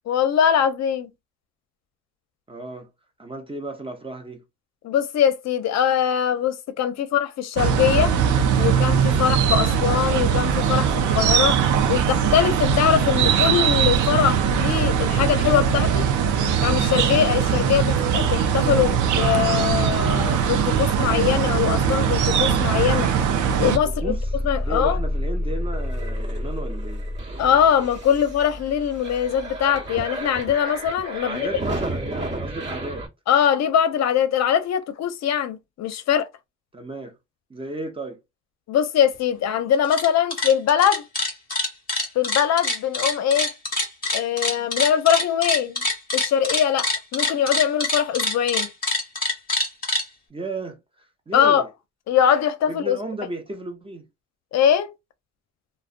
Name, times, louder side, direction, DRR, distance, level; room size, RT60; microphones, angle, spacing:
voice 1, 0.1-1.1 4.8-8.1 8.6-11.6 11.9-16.1 16.6-23.1 23.6-24.1 24.4-25.0 27.4-31.5 33.3-36.3 38.7-41.0 42.1-43.5 44.1-45.8 46.1-48.7 51.3-51.7 52.1-53.0 54.5-54.9, left 9 dB, 60° left, 0.5 m, -22 dB
voice 2, 2.5-2.9 3.2-4.4 23.8-24.2 24.6-27.1 31.2-33.1 36.7-37.2 37.5-38.2 50.3-50.8 51.3-51.7 52.7-54.1, right 2 dB, 20° right, 0.5 m, -33 dB
sound 1, 7.6-23.8, right 7 dB, 75° right, 0.4 m, -21 dB
sound 2, 14.7-33.1, equal, 40° right, 1.0 m, -32 dB
sound 3, 39.7-40.1 40.3-50.0, left 2 dB, 30° left, 1.0 m, -25 dB
2.4 x 2.0 x 2.4 m
cardioid pair, 90°, 30 cm